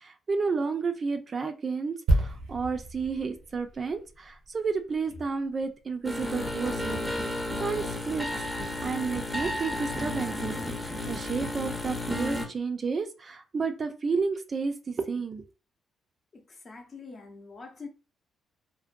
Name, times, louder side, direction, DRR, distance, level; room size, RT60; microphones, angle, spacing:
voice 1, 0.0-7.0 7.6-8.3 8.8-10.6 11.1-15.4, right 4 dB, 40° right, 0.4 m, -31 dB
sound 1, 2.1-5.7 6.0-6.2, right 1 dB, 90° right, 0.6 m, -31 dB
sound 2, 5.0-5.7 6.8-7.4 8.6-9.0 9.3-9.4 10.6-11.6 12.0-12.8, left 2 dB, 85° left, 0.7 m, -50 dB
sound 3, 6.0-12.5, left 1 dB, 5° left, 0.6 m, -32 dB
voice 2, 16.3-17.9, left 4 dB, 40° left, 0.7 m, -45 dB
2.5 x 2.1 x 2.5 m
cardioid pair, 90°, 0 cm